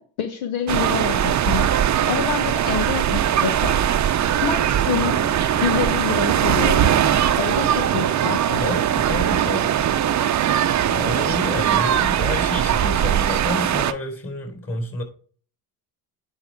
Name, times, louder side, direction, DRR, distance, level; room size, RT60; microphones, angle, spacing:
voice 1, 0.0-3.8 4.4-5.3 5.6-7.0 7.4-8.7, left 7 dB, 70° left, 1.1 m, -27 dB
sound 1, 0.7-13.9, right 10 dB, 35° right, 0.7 m, -20 dB
voice 2, 8.6-9.7 10.8-15.0, left 2 dB, 30° left, 4.3 m, -29 dB
10.0 x 4.9 x 4.6 m
supercardioid pair, 75°, 48 cm